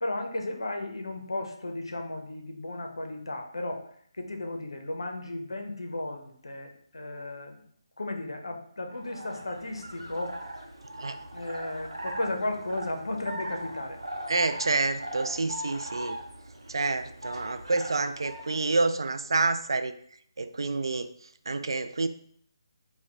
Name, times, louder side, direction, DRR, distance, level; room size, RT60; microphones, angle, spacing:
voice 1, 0.0-3.9 4.1-7.6 8.0-10.4 11.3-14.0, left 2 dB, 65° left, 3 dB, 0.8 m, -34 dB
sound 1, 8.9-18.6, right 1 dB, 75° right, 0.8 m, -39 dB
voice 2, 14.3-16.2 16.7-20.0 20.4-21.1 21.5-22.1, right 3 dB, 60° right, 9 dB, 0.3 m, -28 dB
4.3 x 2.3 x 3.6 m, 0.62 s
figure-of-eight pair, 150°, 3 cm